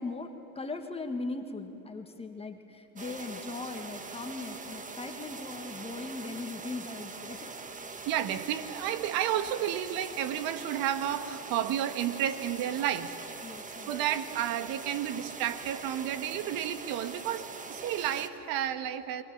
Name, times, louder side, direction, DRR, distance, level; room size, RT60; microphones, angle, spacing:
voice 1, 0.0-7.5 13.4-14.0, left 3 dB, 15° left, 5 dB, 1.9 m, -39 dB
sound 1, 3.0-18.3, right 4 dB, 15° right, 1.5 m, -43 dB
voice 2, 8.0-13.1 13.9-19.2, right 10 dB, 55° right, 11 dB, 1.7 m, -31 dB
29.5 x 23.5 x 7.3 m, 2.7 s
hypercardioid pair, 105°, 44 cm